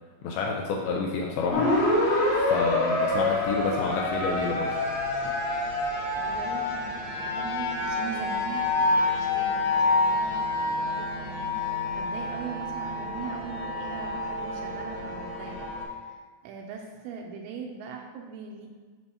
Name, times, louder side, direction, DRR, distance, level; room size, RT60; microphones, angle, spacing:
voice 1, 0.2-1.7 2.3-4.8, left 4 dB, 85° left, -1 dB, 2.2 m, -29 dB
sound 1, 1.5-15.8, left 2 dB, 60° left, 2.2 m, -27 dB
voice 2, 6.2-18.7, right 5 dB, 85° right, 1 dB, 2.7 m, -41 dB
9.5 x 5.3 x 2.8 m, 1.4 s
omnidirectional pair, 5.1 m